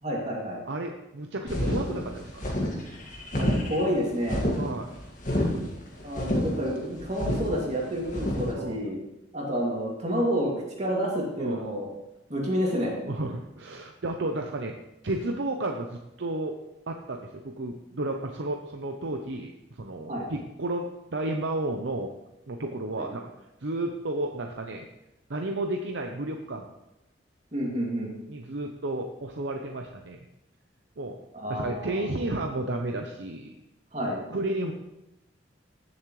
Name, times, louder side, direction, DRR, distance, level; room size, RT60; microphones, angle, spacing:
voice 1, 0.0-0.6 3.4-4.4 6.0-9.0 9.3-11.9 12.3-12.9 20.1-20.3 23.0-23.1 27.5-28.1 31.3-32.0 33.9-34.2, equal, 40° right, -3 dB, 2.6 m, -29 dB
voice 2, 0.7-2.5 4.6-4.9 5.5-5.7 6.0-6.1 8.5-8.8 11.4-11.6 13.1-14.7 15.0-16.5 16.9-22.1 22.5-23.3 23.6-24.9 25.3-26.7 28.3-30.2 31.0-31.2 31.5-33.6 34.1-34.7, right 2 dB, 75° right, 3 dB, 0.8 m, -32 dB
sound 1, 1.5-8.5, left 1 dB, 45° left, 2.0 m, -29 dB
16.5 x 7.3 x 3.2 m, 0.93 s
head